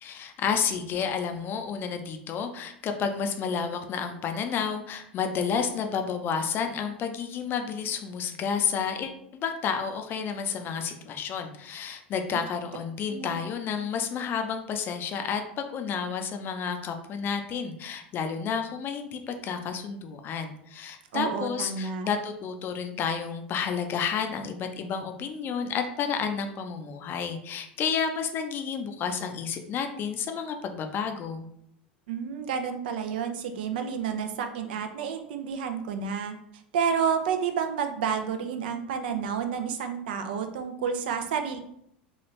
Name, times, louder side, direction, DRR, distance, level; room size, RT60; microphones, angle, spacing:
voice 1, 0.0-31.5, left 6 dB, 40° left, 6 dB, 0.5 m, -31 dB
voice 2, 13.1-13.4 21.1-22.1 32.1-36.3 36.7-41.6, right 7 dB, 70° right, 6 dB, 0.4 m, -30 dB
3.0 x 2.3 x 3.1 m, 0.72 s
hypercardioid pair, 85°, 5 cm